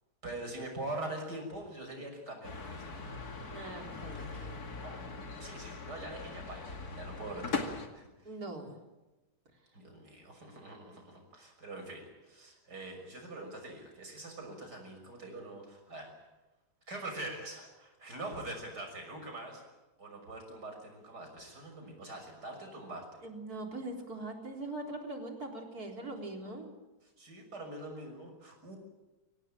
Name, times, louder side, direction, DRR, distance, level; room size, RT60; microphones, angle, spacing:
voice 1, 0.2-3.0 4.8-5.0 5.4-8.3 9.7-16.1 16.9-19.6 20.0-23.1 27.0-28.8, right 2 dB, 85° right, 3 dB, 6.8 m, -44 dB
sound 1, 2.4-7.9, left 4 dB, 70° left, 2.8 m, -40 dB
voice 2, 3.5-4.6 8.2-8.8 23.2-26.7, right 2 dB, 65° right, 2 dB, 4.4 m, -42 dB
24.5 x 18.0 x 8.9 m, 1.1 s
omnidirectional pair, 1.7 m